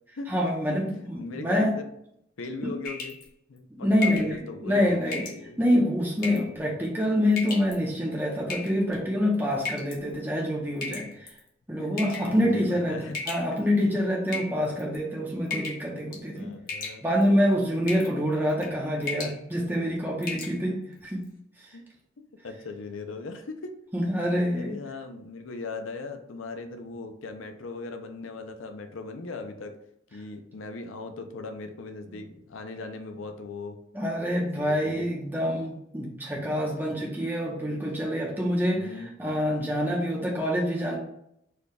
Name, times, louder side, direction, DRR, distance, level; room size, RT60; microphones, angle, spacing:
voice 1, 0.3-1.7 2.6-2.7 3.8-5.2 5.6-11.3 11.7-16.5 17.0-21.2 23.9-24.7 33.9-38.9 39.2-41.0, equal, 10° right, -3 dB, 0.7 m, -26 dB
voice 2, 1.2-1.9 2.4-3.2 3.5-5.6 11.1-11.2 11.8-13.2 13.5-13.6 14.3-14.4 16.4-17.0 21.7-21.8 22.2-23.7 24.3-29.7 30.1-33.8 34.6-35.1 38.7-39.1, left 3 dB, 80° left, 6 dB, 0.6 m, -39 dB
sound 1, 2.9-3.3 4.0-4.3 5.1-5.4 6.2-6.5 7.3-7.7 8.5-9.0 9.7-10.0 10.8-11.4 12.0-12.3 13.1-13.8 14.3-15.0 15.5-15.9 16.1-16.4 16.7-17.3 17.9-18.1 18.5-18.7 19.0-19.4 19.7-19.8 20.2-20.5, left 3 dB, 45° left, 1.0 m, -34 dB
4.6 x 2.3 x 4.7 m, 0.75 s
head